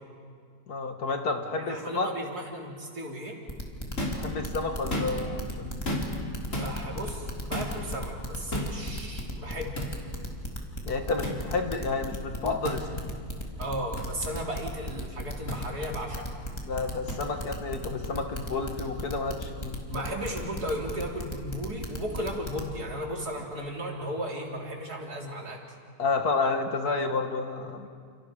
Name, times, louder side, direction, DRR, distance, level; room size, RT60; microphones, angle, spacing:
voice 1, 0.7-2.1 4.1-6.0 10.8-13.1 16.6-19.8 26.0-27.9, left 3 dB, 80° left, 4 dB, 2.4 m, -30 dB
voice 2, 1.6-3.4 6.5-9.7 13.6-16.3 19.9-25.6, equal, 90° right, -1 dB, 4.1 m, -35 dB
sound 1, 3.5-22.7, equal, 15° left, 2.5 m, -36 dB
sound 2, 4.0-4.3 4.8-5.3 5.8-6.2 6.5-6.7 7.5-7.7 8.5-8.7 9.7-9.9 11.2-11.4 12.6-12.8 14.0-14.1 15.5-15.6 17.1-17.2, left 1 dB, 55° left, 4.2 m, -32 dB
30.0 x 28.0 x 5.0 m, 2.1 s
omnidirectional pair, 1.6 m